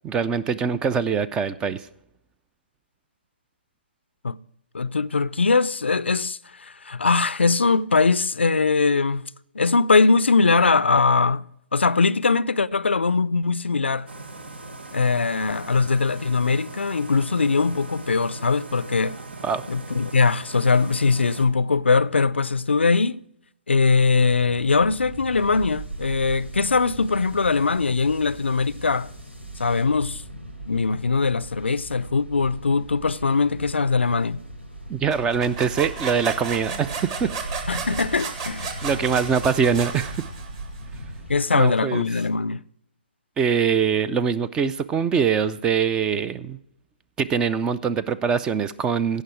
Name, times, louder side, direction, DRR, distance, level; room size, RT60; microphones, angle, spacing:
voice 1, 0.0-1.9 19.4-19.6 34.9-37.3 38.8-40.2 41.5-42.0 43.4-46.6 47.2-49.2, right 6 dB, 15° right, 0.4 m, -23 dB
voice 2, 4.7-9.3 9.5-11.5 11.7-14.1 14.9-19.2 19.7-23.2 23.7-29.1 29.6-30.2 30.7-34.4 37.7-38.7 41.3-42.7, left 4 dB, 80° left, 0.4 m, -21 dB
sound 1, 14.1-21.5, right 2 dB, 70° right, 1.2 m, -40 dB
sound 2, 24.1-41.4, right 1 dB, 85° right, 4.2 m, -38 dB
sound 3, 35.1-40.8, right 5 dB, 30° right, 1.8 m, -33 dB
16.5 x 5.7 x 4.7 m
figure-of-eight pair, 135°, 6 cm